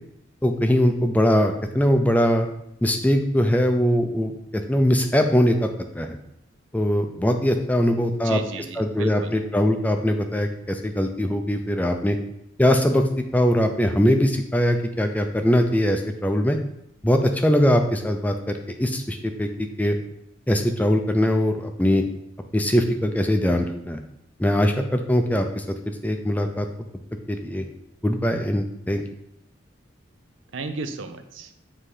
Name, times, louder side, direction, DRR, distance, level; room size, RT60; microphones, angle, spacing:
voice 1, 0.4-2.5 2.8-6.2 6.7-8.4 8.8-12.2 12.6-16.6 17.0-20.0 20.5-22.0 22.5-24.0 24.4-25.6 26.0-26.7 27.3-27.6 28.0-29.0, equal, 10° left, 5 dB, 0.4 m, -21 dB
voice 2, 8.1-9.3 30.5-31.5, right 3 dB, 90° right, 8 dB, 0.6 m, -34 dB
7.6 x 2.8 x 4.9 m, 0.77 s
head